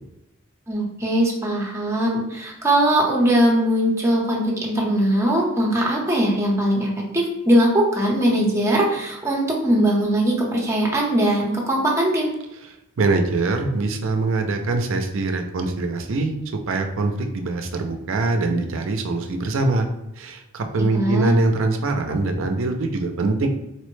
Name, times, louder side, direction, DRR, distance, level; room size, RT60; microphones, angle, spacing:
voice 1, 0.7-12.3 20.9-21.3, right 1 dB, 15° right, -2 dB, 0.7 m, -20 dB
voice 2, 13.0-16.4 16.7-19.9 20.2-23.5, right 3 dB, 65° right, 5 dB, 0.5 m, -23 dB
4.2 x 2.1 x 3.1 m, 0.92 s
head